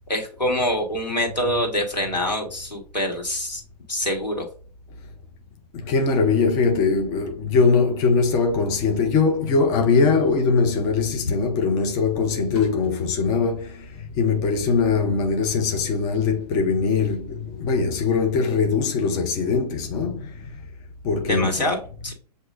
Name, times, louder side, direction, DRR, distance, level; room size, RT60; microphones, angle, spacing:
voice 1, 0.1-3.6 3.9-4.5 21.3-21.8 22.0-22.1, left 1 dB, 85° left, 1.5 m, -25 dB
voice 2, 5.7-13.9 14.2-20.3 21.0-21.7, left 4 dB, 15° left, 0.5 m, -21 dB
sound 1, 12.5-13.3 15.0-15.1 15.3-15.4 15.9-16.0 16.4-16.5 17.3-18.1, left 5 dB, 40° left, 1.2 m, -32 dB
7.4 x 2.6 x 2.5 m
figure-of-eight pair, 125°, 21 cm